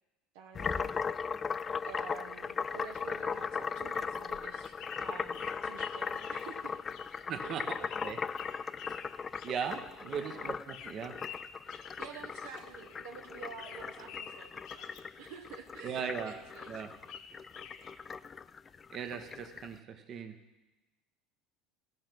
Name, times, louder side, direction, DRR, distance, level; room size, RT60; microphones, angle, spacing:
voice 1, 0.3-1.0 1.9-6.8 7.4-7.8 10.0-10.5 12.0-14.9 15.2-16.7, right 7 dB, 75° right, 4 dB, 0.8 m, -49 dB
sound 1, 0.5-19.7, left 5 dB, 30° left, 0.3 m, -38 dB
sound 2, 4.1-13.1 13.4-15.6 15.9-18.0, left 8 dB, 65° left, 1.0 m, -50 dB
voice 2, 7.3-8.2 8.5-8.7 9.4-11.2 15.8-16.4 16.7-16.9 18.9-20.4, right 7 dB, 50° right, 8 dB, 1.0 m, -39 dB
14.0 x 5.3 x 6.0 m, 1.1 s
hypercardioid pair, 85°, 0 cm